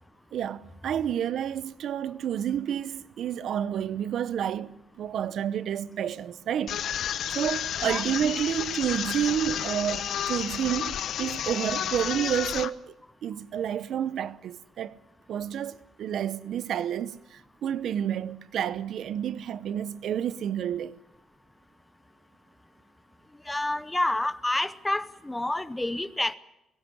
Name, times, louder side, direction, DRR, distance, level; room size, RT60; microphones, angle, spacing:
voice 1, 0.3-6.8 7.3-15.0 15.3-20.9, right 9 dB, 70° right, 0.8 m, -30 dB
sound 1, 6.7-12.7, left 9 dB, 70° left, 0.8 m, -31 dB
voice 2, 23.5-26.3, left 1 dB, 10° left, 0.8 m, -28 dB
18.0 x 17.0 x 9.7 m
cardioid pair, 90°, 0 cm